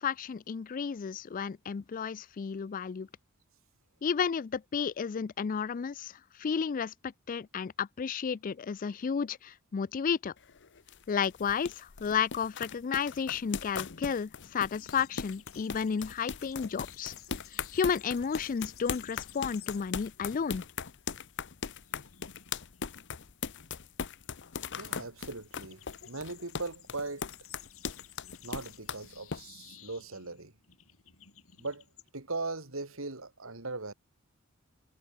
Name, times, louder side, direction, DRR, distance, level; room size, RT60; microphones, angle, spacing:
voice 1, 0.0-3.1 4.0-10.3 11.1-17.1 17.5-20.6, left 6 dB, 40° left, 0.4 m, -32 dB
sound 1, 10.4-29.4, left 6 dB, 55° left, 0.9 m, -39 dB
sound 2, 14.7-20.1 20.4-20.7 21.1-32.1, left 10 dB, 70° left, 6.1 m, -55 dB
voice 2, 24.8-27.3 28.4-30.5 31.6-31.8 32.1-33.9, right 3 dB, 70° right, 2.8 m, -39 dB
head